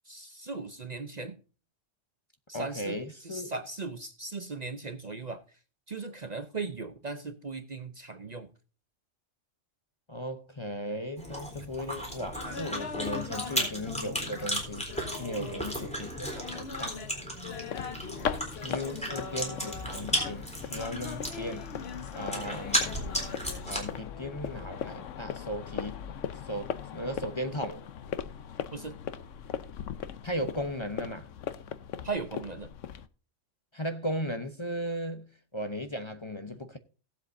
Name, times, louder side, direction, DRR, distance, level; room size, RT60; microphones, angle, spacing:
voice 1, 0.1-1.4 2.5-5.4 5.9-8.5 15.4-15.6 22.3-22.6 28.7-29.0 32.0-32.7, right 4 dB, 40° right, 0.8 m, -38 dB
voice 2, 2.5-3.5 10.1-14.9 15.2-17.0 18.6-21.7 22.1-23.0 23.6-26.0 26.5-27.9 30.2-31.3 33.7-36.8, equal, 25° left, 0.8 m, -36 dB
Chewing mastication, 11.2-24.0, equal, 5° left, 3.7 m, -35 dB
sound 1, 12.3-15.9 16.4-24.9, left 5 dB, 60° left, 1.2 m, -43 dB
sound 2, 17.5-33.1, left 8 dB, 90° left, 1.1 m, -39 dB
18.0 x 8.0 x 2.6 m
omnidirectional pair, 1.2 m